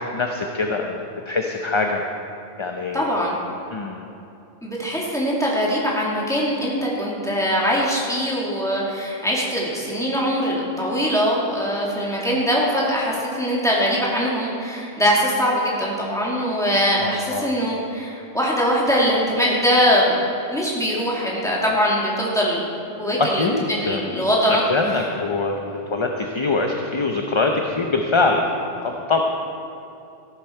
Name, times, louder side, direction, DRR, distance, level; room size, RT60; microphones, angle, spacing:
voice 1, 0.1-2.0 2.6-3.1 3.7-4.0 17.0-17.5 23.2-24.1 24.5-28.5 28.8-29.2, left 3 dB, 30° left, 2 dB, 0.7 m, -23 dB
voice 2, 2.9-3.3 4.6-20.2 20.5-24.6 25.0-25.1, equal, 5° left, -5 dB, 2.5 m, -22 dB
14.0 x 12.0 x 4.5 m, 2.7 s
omnidirectional pair, 1.1 m